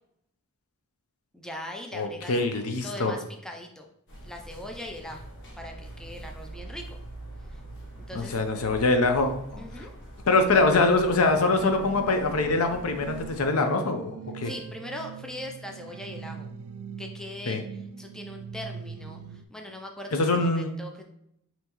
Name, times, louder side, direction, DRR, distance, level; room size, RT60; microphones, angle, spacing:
voice 1, 1.3-2.4 2.8-3.9 4.2-5.3 5.6-7.0 7.5-7.6 8.1-8.4 9.6-9.9 14.4-16.5 17.0-17.6 18.0-21.0, left 1 dB, 5° left, 2 dB, 0.4 m, -40 dB
voice 2, 1.9-3.2 8.1-9.9 10.3-14.5 17.5-17.6 20.1-20.7, left 3 dB, 75° left, 6 dB, 0.6 m, -24 dB
sound 1, 4.1-13.5, right 1 dB, 55° left, 1.1 m, -44 dB
sound 2, 11.5-19.4, right 6 dB, 70° right, 0.3 m, -42 dB
5.5 x 2.9 x 3.0 m, 0.75 s
head